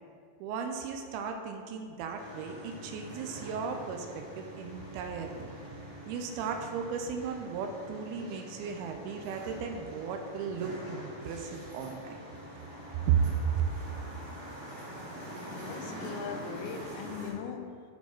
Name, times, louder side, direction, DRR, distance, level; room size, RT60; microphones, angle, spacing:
voice 1, 0.4-5.5 6.1-12.2 13.1-13.2 13.5-13.6, right 7 dB, 80° right, 4 dB, 2.4 m, -35 dB
sound 1, 2.2-17.3, right 1 dB, 60° right, 3.3 m, -45 dB
voice 2, 15.5-17.8, left 6 dB, 85° left, 7 dB, 2.4 m, -40 dB
7.0 x 4.3 x 4.5 m, 2.2 s
omnidirectional pair, 4.6 m